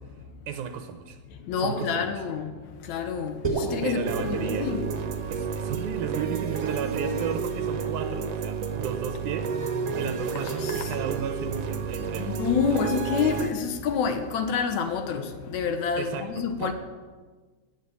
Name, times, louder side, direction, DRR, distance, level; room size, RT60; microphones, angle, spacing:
voice 1, 0.5-1.2 1.5-2.1 3.8-4.8 5.3-9.5 10.0-12.4 12.7-12.8 16.0-16.7, right 8 dB, 90° right, 2.4 m, -34 dB
voice 2, 1.3-4.9 10.4-10.9 12.2-16.7, left 6 dB, 75° left, 2.4 m, -28 dB
sound 1, 3.4-7.8, right 2 dB, 20° right, 0.7 m, -35 dB
sound 2, 4.0-13.5, right 6 dB, 65° right, 2.0 m, -31 dB
19.0 x 7.6 x 8.4 m
omnidirectional pair, 3.4 m